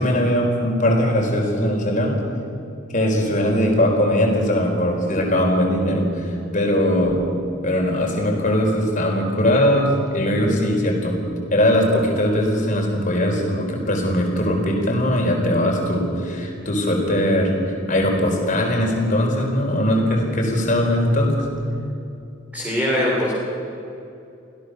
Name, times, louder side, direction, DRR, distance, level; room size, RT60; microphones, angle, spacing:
voice 1, 0.0-2.2 2.9-7.2 7.6-11.2 11.5-21.4, left 1 dB, 40° left, 1 dB, 4.6 m, -20 dB
voice 2, 22.5-23.3, left 1 dB, 10° right, -6 dB, 4.0 m, -21 dB
26.0 x 16.5 x 6.7 m, 2.7 s
head